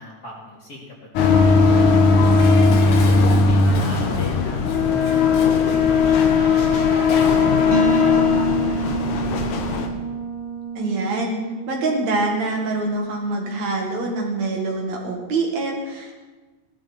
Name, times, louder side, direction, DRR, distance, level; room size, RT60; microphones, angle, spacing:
voice 1, 0.0-2.4 3.3-6.6 6.9-9.2, left 3 dB, 35° left, -3 dB, 2.6 m, -36 dB
sound 1, 1.2-9.9, left 4 dB, 85° left, 2.7 m, -17 dB
Dishes pots and pans, 2.2-7.5 7.8-7.9, left 4 dB, 55° left, 2.0 m, -38 dB
sound 2, 7.7-13.3, right 5 dB, 50° right, 2.0 m, -29 dB
voice 2, 10.8-11.4 11.7-16.2, right 2 dB, 65° right, 0 dB, 3.2 m, -25 dB
17.5 x 12.0 x 4.3 m, 1.3 s
omnidirectional pair, 3.4 m